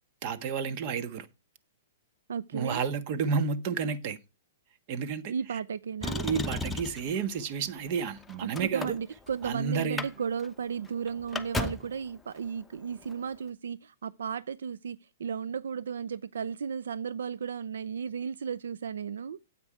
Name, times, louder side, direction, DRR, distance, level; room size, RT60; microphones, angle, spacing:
voice 1, 0.2-1.3 2.5-4.2 4.9-5.6 6.2-9.0 9.4-10.1, right 6 dB, 45° right, 1.4 m, -31 dB
voice 2, 2.3-2.8 5.3-6.2 8.4-19.4, right 7 dB, 80° right, 0.4 m, -34 dB
Motor vehicle (road), 6.0-7.1 7.9-9.5 9.8-10.1 10.4-10.5 10.8-12.0 13.0-13.1, left 2 dB, 5° left, 0.9 m, -34 dB
9.7 x 8.1 x 4.7 m
hypercardioid pair, 125°, 0 cm